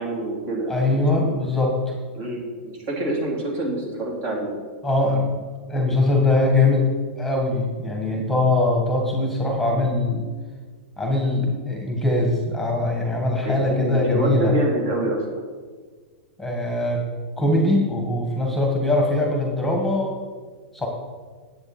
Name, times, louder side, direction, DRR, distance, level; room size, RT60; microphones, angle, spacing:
voice 1, 0.0-1.6 2.1-4.5 5.9-6.0 13.4-15.4, right 1 dB, 40° right, -2 dB, 3.2 m, -27 dB
voice 2, 0.7-1.9 4.8-6.9 7.2-10.3 11.0-14.5 16.4-17.0 17.4-20.2 20.7-20.9, left 2 dB, 5° left, 1 dB, 1.7 m, -22 dB
10.0 x 8.1 x 4.3 m, 1.5 s
hypercardioid pair, 120°, 6 cm